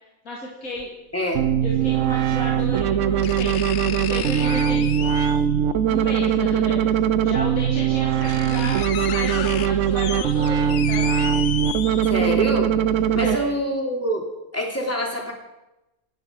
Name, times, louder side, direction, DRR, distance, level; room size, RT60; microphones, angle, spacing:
voice 1, 0.2-0.9 1.6-5.2 5.9-7.0 7.2-11.2 13.2-13.6, left 1 dB, 80° left, -3 dB, 2.9 m, -33 dB
sound 1, 0.8-0.9 2.3-2.4 3.2-5.6 6.9-7.0 7.7-7.8 8.0-12.4 12.9-13.0, left 9 dB, 60° left, 1.0 m, -33 dB
voice 2, 1.1-1.4 12.0-14.2 14.5-15.3, equal, 10° left, -1 dB, 3.3 m, -26 dB
sound 2, 1.3-13.4, right 9 dB, 65° right, 1.0 m, -21 dB
28.0 x 10.0 x 4.8 m, 0.97 s
omnidirectional pair, 1.5 m